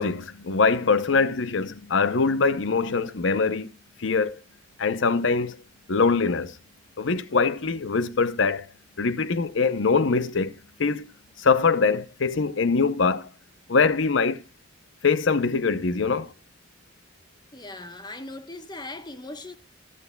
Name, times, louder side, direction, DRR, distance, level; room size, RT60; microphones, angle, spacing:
voice 1, 0.0-3.7 4.0-4.4 4.8-5.6 5.9-6.6 7.0-8.6 9.0-11.1 11.4-13.3 13.7-14.4 15.0-16.3, left 4 dB, 70° left, 0.7 m, -23 dB
voice 2, 17.5-19.6, left 2 dB, 20° left, 1.0 m, -39 dB
15.0 x 12.5 x 2.3 m
head